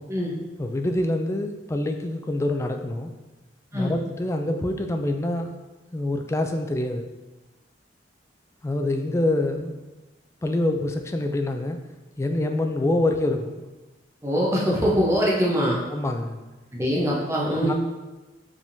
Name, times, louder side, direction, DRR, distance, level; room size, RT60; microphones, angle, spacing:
voice 1, 0.6-3.1 3.7-5.5 5.9-7.1 8.6-9.8 10.4-11.8 12.2-13.6 15.9-16.4 17.6-17.7, left 1 dB, 15° left, 5 dB, 0.3 m, -26 dB
voice 2, 14.2-15.8 16.7-17.7, equal, 15° right, -5 dB, 0.8 m, -23 dB
5.0 x 3.5 x 2.7 m, 1.1 s
head